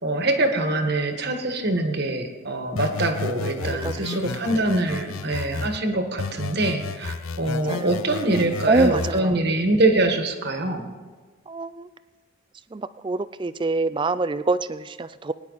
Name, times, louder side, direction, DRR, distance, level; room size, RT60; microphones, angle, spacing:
voice 1, 0.0-10.9, right 2 dB, 50° right, 5 dB, 1.4 m, -24 dB
sound 1, 2.8-5.8 6.2-9.2, left 4 dB, 75° left, 0.5 m, -32 dB
voice 2, 3.6-4.1 7.7-7.9 8.2-9.4 11.5-11.9 12.7-15.3, right 3 dB, 20° right, 14 dB, 0.3 m, -26 dB
21.5 x 10.0 x 4.1 m, 1.4 s
head